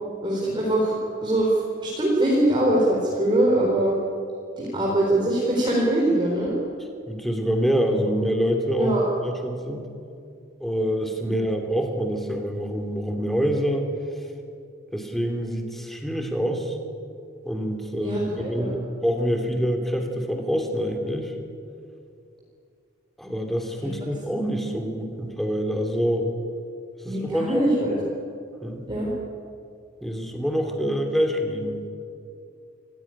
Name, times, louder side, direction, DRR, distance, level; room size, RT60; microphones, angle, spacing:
voice 1, 0.2-0.9 1.2-4.0 4.6-6.6 8.8-9.0 18.0-18.8 23.8-23.9 27.0-28.0 28.9-29.1, right 1 dB, 20° right, -4 dB, 4.2 m, -22 dB
voice 2, 7.1-8.9 9.2-9.9 10.6-13.9 14.9-16.8 17.4-18.2 18.5-21.3 23.2-26.3 27.0-27.6 28.6-28.8 30.0-31.9, equal, ahead, 3 dB, 2.8 m, -26 dB
27.5 x 16.0 x 9.9 m, 2.5 s
head